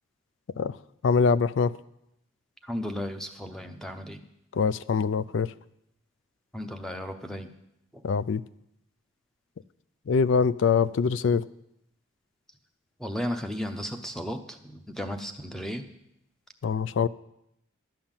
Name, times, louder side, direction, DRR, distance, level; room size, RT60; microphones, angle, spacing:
voice 1, 1.0-1.7 4.5-5.5 8.0-8.4 10.1-11.4 16.6-17.1, left 5 dB, 60° left, 0.3 m, -23 dB
voice 2, 2.6-4.2 6.5-7.5 13.0-15.8, equal, ahead, 0.7 m, -34 dB
12.0 x 5.7 x 8.8 m
head